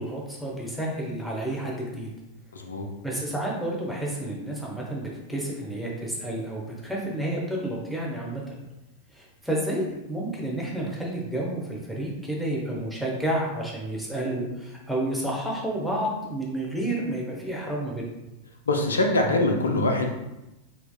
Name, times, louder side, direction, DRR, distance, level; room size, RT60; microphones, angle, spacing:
voice 1, 0.0-2.1 3.0-8.6 9.1-18.1, right 1 dB, ahead, -4 dB, 0.8 m, -30 dB
voice 2, 2.5-2.9 18.7-20.1, left 2 dB, 70° left, 3 dB, 0.5 m, -23 dB
4.2 x 2.8 x 2.3 m, 0.96 s
figure-of-eight pair, 90°, 0 cm